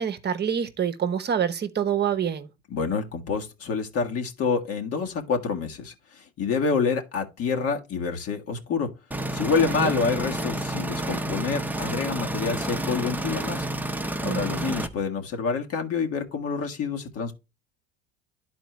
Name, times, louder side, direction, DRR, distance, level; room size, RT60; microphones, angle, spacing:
voice 1, 0.0-2.5 9.6-9.9 14.2-14.8, right 8 dB, 35° right, 1.0 m, -27 dB
voice 2, 2.7-8.9 9.3-13.7 14.2-17.3, left 5 dB, 50° left, 1.7 m, -27 dB
sound 1, 9.1-14.9, right 1 dB, 5° right, 0.9 m, -30 dB
11.0 x 4.3 x 3.0 m
hypercardioid pair, 80°, 30 cm